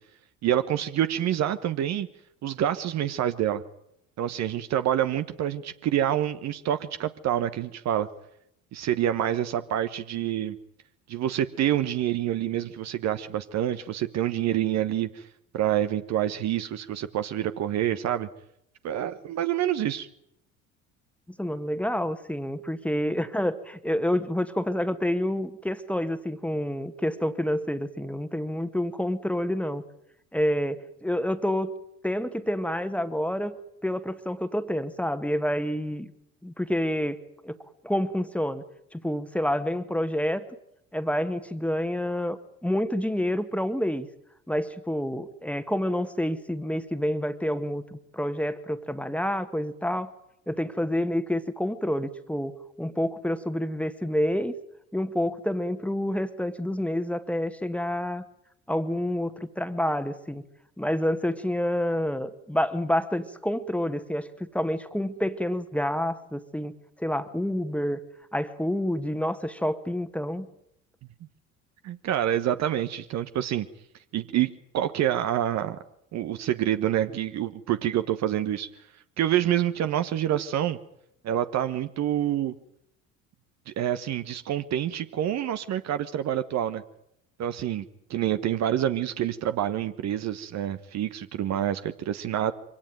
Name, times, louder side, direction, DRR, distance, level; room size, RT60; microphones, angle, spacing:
voice 1, 0.4-2.1 2.4-3.6 4.2-8.1 8.7-10.6 11.1-15.2 15.5-18.3 18.8-20.1 71.8-73.7 74.1-75.8 76.1-78.7 79.2-80.8 81.2-82.5 83.7-86.8 87.4-87.8 88.1-92.5, right 11 dB, 40° right, 11 dB, 1.3 m, -27 dB
voice 2, 21.4-29.8 30.3-31.7 32.0-33.6 33.8-36.1 36.4-37.6 37.8-38.6 38.9-40.5 40.9-44.1 44.5-50.1 50.5-54.5 54.9-58.2 58.7-60.4 60.8-68.0 68.3-70.5, left 1 dB, 5° left, 11 dB, 1.8 m, -28 dB
24.5 x 17.5 x 9.2 m, 0.77 s
figure-of-eight pair, 60°, 39 cm